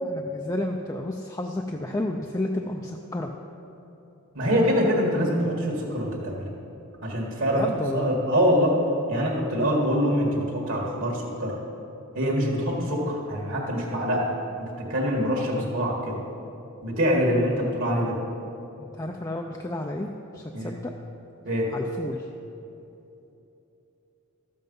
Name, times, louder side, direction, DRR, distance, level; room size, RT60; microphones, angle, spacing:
voice 1, 0.0-3.3 7.5-8.1 18.8-20.9 21.7-22.3, left 1 dB, 15° left, 2 dB, 0.4 m, -31 dB
voice 2, 4.4-6.5 7.0-8.8 9.1-11.6 12.2-14.3 14.6-16.2 16.8-18.2 20.5-20.7 21.5-21.7, equal, 60° right, -2 dB, 1.7 m, -24 dB
13.0 x 7.8 x 5.3 m, 3.0 s
head